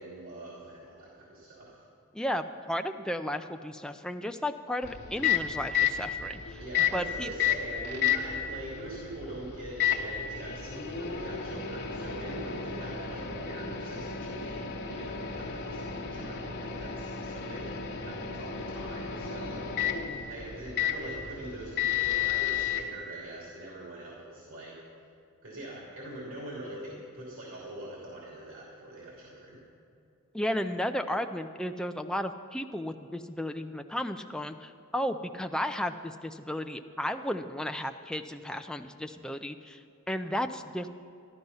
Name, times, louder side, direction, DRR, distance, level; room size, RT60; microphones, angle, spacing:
voice 1, 0.0-1.8 6.6-24.8 25.4-29.6, right 1 dB, 65° right, -5 dB, 2.9 m, -43 dB
voice 2, 2.1-6.6 6.9-7.3 30.3-39.8 40.1-40.9, left 1 dB, 5° left, 6 dB, 0.4 m, -34 dB
Microwave oven, 4.8-22.8, left 8 dB, 50° left, 1.1 m, -32 dB
13.0 x 12.0 x 5.5 m, 2.6 s
head